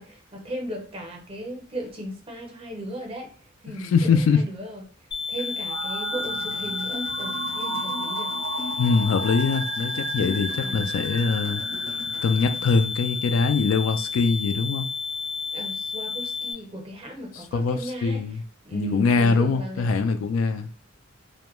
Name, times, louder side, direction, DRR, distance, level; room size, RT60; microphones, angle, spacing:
voice 1, 0.0-3.3 3.6-4.8 5.3-8.4 10.6-11.0 15.5-18.4 18.6-19.9, right 1 dB, 30° right, 0.6 m, -36 dB
voice 2, 3.9-4.4 8.8-11.6 12.2-14.9 17.5-18.4 18.7-20.7, left 4 dB, 85° left, 0.3 m, -23 dB
sound 1, 5.1-16.5, left 5 dB, 25° left, 0.5 m, -31 dB
sound 2, 5.7-12.9, right 5 dB, 75° right, 0.3 m, -35 dB
sound 3, 6.1-12.8, left 1 dB, 65° left, 0.8 m, -42 dB
2.2 x 2.1 x 3.0 m
head